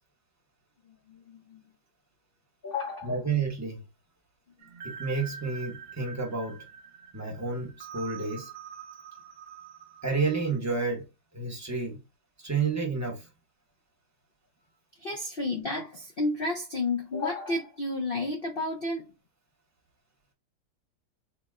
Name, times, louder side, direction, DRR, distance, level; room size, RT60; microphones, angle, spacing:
voice 1, 0.9-1.6 2.6-3.1 15.0-19.1, left 2 dB, 70° left, 0.5 m, -32 dB
voice 2, 3.0-3.8 4.8-6.6 7.1-8.5 10.0-11.0 11.3-12.0 12.4-13.3, right 4 dB, 20° right, 0.4 m, -30 dB
sound 1, 4.6-10.6, right 7 dB, 65° right, 0.7 m, -45 dB
4.0 x 2.1 x 3.5 m
omnidirectional pair, 1.8 m